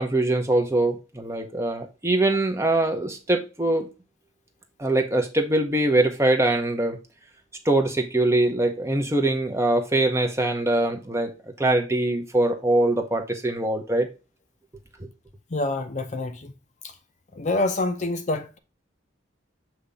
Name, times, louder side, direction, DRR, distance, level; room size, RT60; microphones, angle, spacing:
voice 1, 0.0-3.9 4.8-7.0 7.6-14.1, right 2 dB, 15° right, 0.8 m, -23 dB
voice 2, 15.5-16.5 17.4-18.6, left 2 dB, 35° left, 0.5 m, -26 dB
6.9 x 2.9 x 5.0 m
head